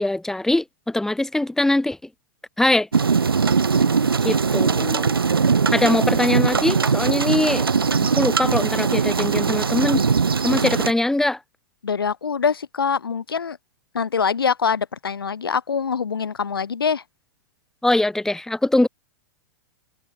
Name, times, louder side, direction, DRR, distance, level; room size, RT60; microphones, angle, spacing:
voice 1, 0.0-2.0 2.6-2.9 4.2-5.1 5.7-7.7 8.2-10.0 10.4-11.4 17.8-18.9, left 1 dB, 5° left, 1.1 m, -22 dB
sound 1, 2.9-10.9, right 5 dB, 90° right, 2.2 m, -20 dB
voice 2, 11.8-13.6 13.9-17.0, left 6 dB, 90° left, 0.7 m, -24 dB
hypercardioid pair, 110°, 12 cm